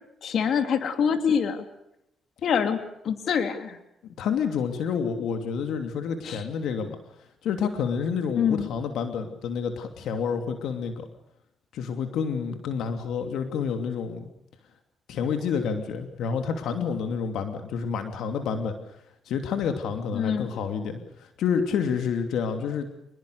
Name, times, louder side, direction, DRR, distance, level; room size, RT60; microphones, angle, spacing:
voice 1, 0.2-1.6 2.4-2.8 3.0-3.8 6.2-6.4 8.4-8.7 20.1-20.5, left 7 dB, 65° left, 7 dB, 3.0 m, -25 dB
voice 2, 4.0-7.0 7.4-11.1 11.7-14.3 15.1-18.8 19.3-22.9, left 6 dB, 80° left, 6 dB, 2.8 m, -29 dB
27.0 x 21.0 x 6.6 m, 0.82 s
cardioid pair, 90°, 0 cm